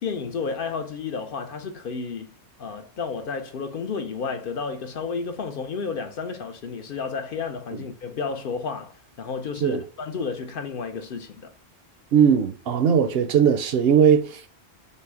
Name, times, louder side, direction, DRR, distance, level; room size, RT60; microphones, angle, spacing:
voice 1, 0.0-2.3 2.6-11.5, left 5 dB, 60° left, 0.7 m, -31 dB
voice 2, 12.1-14.4, right 8 dB, 65° right, 0.7 m, -19 dB
5.3 x 2.1 x 3.4 m
omnidirectional pair, 1.1 m